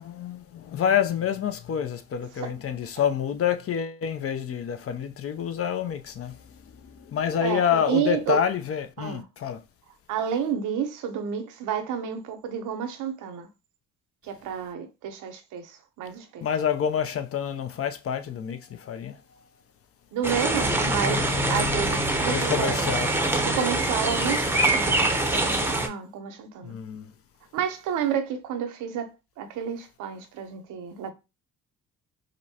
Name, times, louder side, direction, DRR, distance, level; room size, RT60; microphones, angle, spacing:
voice 1, 0.0-6.3 6.8-9.6 16.4-19.2 22.3-23.1 26.6-27.1, left 8 dB, 50° left, 0.6 m, -27 dB
voice 2, 7.4-8.4 9.0-9.2 10.1-13.5 14.2-16.5 20.1-22.8 23.4-26.8 27.5-29.1 29.4-31.1, right 8 dB, 90° right, 0.8 m, -30 dB
sound 1, 20.2-25.9, right 1 dB, 5° right, 0.7 m, -24 dB
5.1 x 2.1 x 2.8 m
cardioid pair, 90°, 30 cm